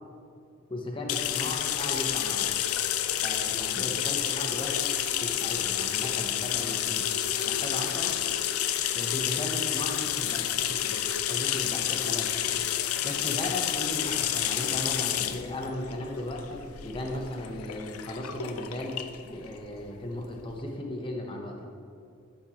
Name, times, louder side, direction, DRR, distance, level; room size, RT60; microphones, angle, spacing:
voice 1, 0.7-2.6 3.1-7.1 7.5-8.2 8.9-12.3 13.0-19.0 19.2-21.7, left 1 dB, 25° left, 0 dB, 0.9 m, -36 dB
sound 1, 1.1-20.5, left 11 dB, 85° left, 0.5 m, -30 dB
13.5 x 5.5 x 2.9 m, 2.5 s
head